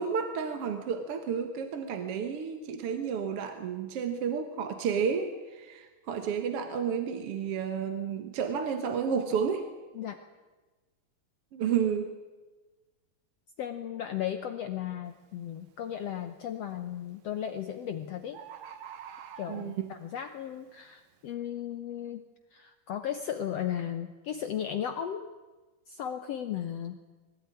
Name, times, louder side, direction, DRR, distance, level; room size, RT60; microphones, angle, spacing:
voice 1, 0.0-9.7 11.5-12.1 19.5-19.9, right 7 dB, 55° right, 7 dB, 1.8 m, -31 dB
voice 2, 9.9-10.3 13.6-18.4 19.4-22.3 22.5-25.3 25.9-27.0, left 10 dB, 70° left, 8 dB, 1.5 m, -35 dB
Bird, 15.1-15.3 15.9-16.3 17.3-17.4 17.7-17.8 18.0-18.1 18.3-20.1 20.6-20.7, right 8 dB, 90° right, 3.1 m, -46 dB
22.0 x 17.5 x 9.9 m, 1.3 s
omnidirectional pair, 4.0 m